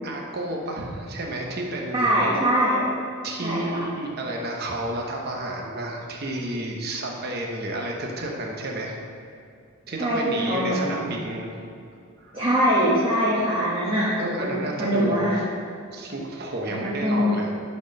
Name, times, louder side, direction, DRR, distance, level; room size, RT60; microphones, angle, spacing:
voice 1, 0.0-2.1 3.2-9.0 9.9-11.5 12.2-12.4 14.2-15.3 15.9-17.5, right 1 dB, 50° right, -1 dB, 0.9 m, -31 dB
voice 2, 1.9-2.9 3.4-3.9 10.0-11.1 12.3-14.1 14.4-15.4 16.7-17.3, equal, 25° right, -8 dB, 1.2 m, -23 dB
10.0 x 4.4 x 5.3 m, 2.3 s
head